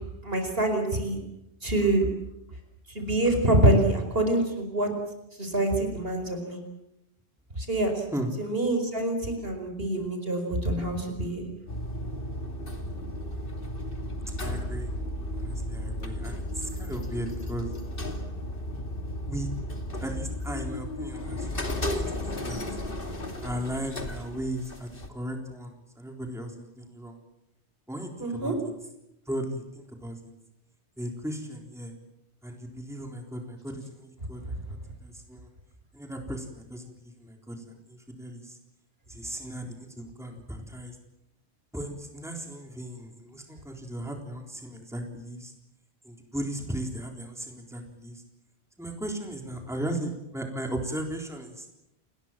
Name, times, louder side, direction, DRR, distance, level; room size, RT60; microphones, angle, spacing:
voice 1, 0.2-1.2 1.6-2.0 3.0-4.9 5.4-6.6 7.6-7.9 8.4-11.5 28.2-28.6, right 1 dB, 55° right, 5 dB, 5.4 m, -25 dB
sound 1, 11.7-25.1, left 1 dB, 50° left, 2.9 m, -34 dB
voice 2, 14.4-14.9 15.3-17.7 19.3-19.5 20.0-22.6 23.4-27.1 27.9-28.6 29.3-30.2 31.0-31.9 32.4-34.5 35.0-35.5 35.9-38.6 39.1-41.0 41.7-45.5 46.0-48.2 48.8-51.7, right 1 dB, ahead, 3 dB, 3.9 m, -36 dB
30.0 x 21.0 x 7.6 m, 0.86 s
omnidirectional pair, 1.2 m